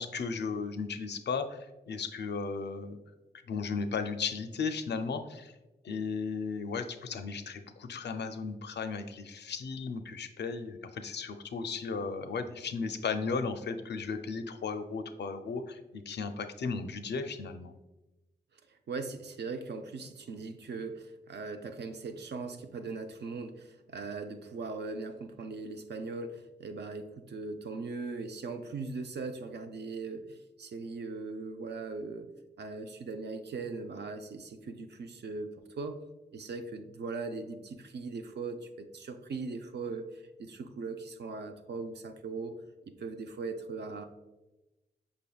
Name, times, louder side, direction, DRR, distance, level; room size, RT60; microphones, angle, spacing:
voice 1, 0.0-3.0 3.5-5.5 5.8-17.8, left 5 dB, 70° left, 8 dB, 0.4 m, -35 dB
voice 2, 18.7-32.3 32.6-36.0 36.3-42.5 42.8-44.0, right 4 dB, 65° right, 6 dB, 0.4 m, -39 dB
5.1 x 3.4 x 2.3 m, 1.0 s
cardioid pair, 50°, 19 cm